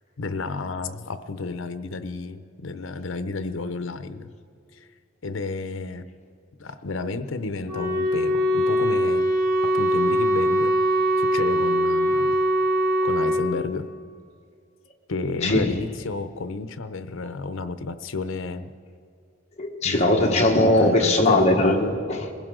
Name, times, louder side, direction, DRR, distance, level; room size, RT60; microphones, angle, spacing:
voice 1, 0.2-4.3 4.8-4.9 5.2-6.0 6.6-9.3 9.6-10.7 11.2-12.4 13.0-13.9 15.1-18.7 19.8-20.5 20.8-21.4, left 3 dB, 75° left, 11 dB, 0.7 m, -31 dB
Wind instrument woodwind instrument, 7.7-13.4, equal, 20° right, 2.6 m, -22 dB
voice 2, 19.6-22.3, left 1 dB, 35° left, 1 dB, 1.4 m, -20 dB
21.5 x 15.5 x 3.8 m, 2.3 s
head